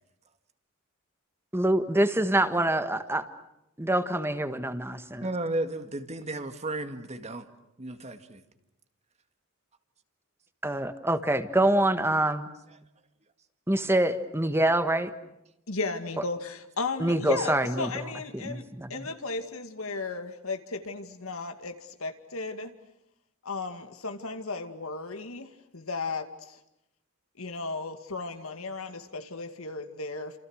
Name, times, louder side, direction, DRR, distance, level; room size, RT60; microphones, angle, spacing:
voice 1, 1.5-3.3 3.8-5.2 10.6-12.5 13.7-15.1 17.0-18.1 18.3-19.1, right 1 dB, 10° right, 1.5 m, -26 dB
voice 2, 5.2-7.5 7.8-8.4, right 2 dB, 30° right, 1.9 m, -33 dB
voice 3, 15.7-18.6 18.9-22.7 23.4-26.6 27.4-30.4, left 3 dB, 80° left, 2.3 m, -35 dB
29.5 x 27.5 x 6.5 m
head